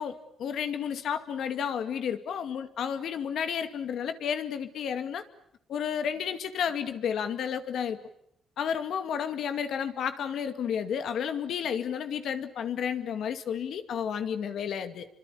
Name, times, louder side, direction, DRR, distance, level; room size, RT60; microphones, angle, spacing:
voice 1, 0.0-5.2 5.7-8.0 8.6-15.1, left 8 dB, 70° left, 9 dB, 2.3 m, -31 dB
28.0 x 25.0 x 8.5 m, 0.73 s
cardioid pair, 110°, 0 cm